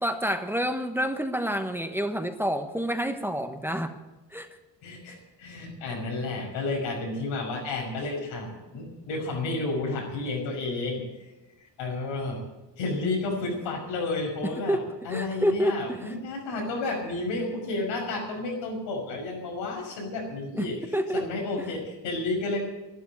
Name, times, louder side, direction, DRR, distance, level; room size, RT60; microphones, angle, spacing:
voice 1, 0.0-3.9 4.3-4.5 14.7-14.8 15.1-16.1 20.5-21.2 21.6-21.7, equal, 5° right, 6 dB, 1.1 m, -28 dB
voice 2, 4.8-11.3 11.6-12.4 12.8-14.8 15.0-20.8 21.1-22.6, left 2 dB, 90° left, 0 dB, 5.9 m, -31 dB
12.0 x 12.0 x 8.6 m, 1.1 s
cardioid pair, 115°, 44 cm